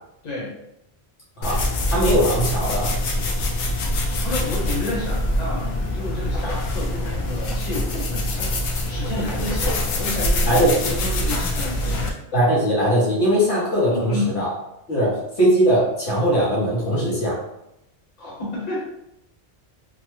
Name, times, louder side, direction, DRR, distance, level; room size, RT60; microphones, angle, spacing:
voice 1, 0.2-0.5 4.2-12.2 13.9-14.3 18.2-18.9, left 2 dB, 40° left, -5 dB, 1.0 m, -30 dB
sound 1, 1.4-12.1, left 1 dB, 65° left, 0.7 m, -24 dB
voice 2, 1.9-2.9 10.4-10.9 12.3-14.5 14.9-17.4, equal, 85° left, -6 dB, 1.5 m, -20 dB
3.3 x 2.1 x 3.1 m, 0.83 s
omnidirectional pair, 1.2 m